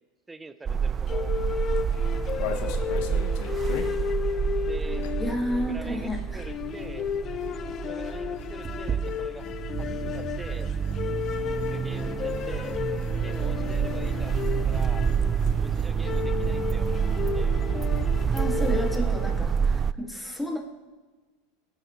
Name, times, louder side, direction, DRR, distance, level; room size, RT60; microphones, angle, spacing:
voice 1, 0.3-1.7 4.7-5.1 5.5-7.1 7.8-9.5 9.8-10.7 11.6-12.8 13.2-15.1 15.6-17.6 18.3-19.2 20.4-20.6, right 3 dB, 15° right, 11 dB, 0.7 m, -44 dB
sound 1, 0.6-19.9, right 7 dB, 30° right, 0.3 m, -28 dB
sound 2, 1.1-19.6, left 9 dB, 40° left, 0.6 m, -34 dB
sound 3, 1.8-5.4 5.6-16.6 16.8-16.9 17.2-17.5, left 7 dB, 65° left, 1.3 m, -43 dB
voice 2, 5.2-6.5 18.3-20.6, equal, 5° left, 1 dB, 2.3 m, -31 dB
18.5 x 8.8 x 3.2 m, 1.3 s
hypercardioid pair, 100°, 0 cm